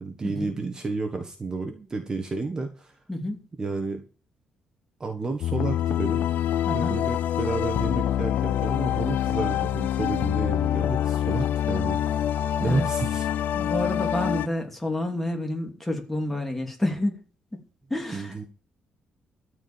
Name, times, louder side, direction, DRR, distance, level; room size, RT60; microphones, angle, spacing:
voice 1, 0.0-2.9 3.6-4.0 5.0-6.3 6.7-12.2 12.6-13.4 18.1-18.4, right 3 dB, 20° right, 5 dB, 1.6 m, -31 dB
voice 2, 3.1-3.4 6.7-7.0 12.6-12.9 13.5-17.2 17.5-17.6 17.9-18.3, left 1 dB, 5° left, 3 dB, 2.7 m, -29 dB
sound 1, 5.4-14.5, left 11 dB, 70° left, 0.7 m, -25 dB
13.5 x 4.9 x 9.0 m, 0.36 s
cardioid pair, 175°, 3 cm